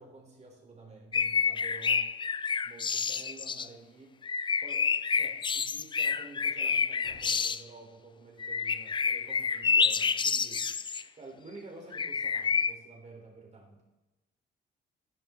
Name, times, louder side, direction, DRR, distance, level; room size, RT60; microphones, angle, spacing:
voice 1, 0.0-2.1 2.6-4.2 4.6-13.8, right 3 dB, 35° right, 0 dB, 3.7 m, -50 dB
sound 1, 1.1-3.7 4.2-7.6 8.4-11.0 11.9-12.7, left 6 dB, 25° left, 0.3 m, -29 dB
sound 2, 6.9-8.1, left 2 dB, 65° left, 4.1 m, -59 dB
10.5 x 10.5 x 3.8 m, 1.0 s
cardioid pair, 90°, 20 cm